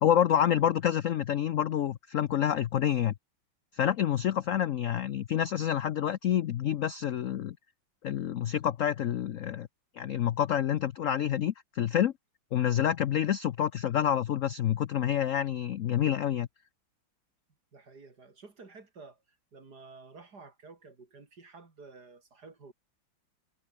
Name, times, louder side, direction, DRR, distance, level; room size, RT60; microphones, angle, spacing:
voice 1, 0.0-3.1 3.7-7.6 8.0-9.7 10.0-12.1 12.5-16.5, left 10 dB, 75° left, 0.7 m, -28 dB
voice 2, 17.7-22.7, right 4 dB, 50° right, 3.9 m, -51 dB
omnidirectional pair, 2.2 m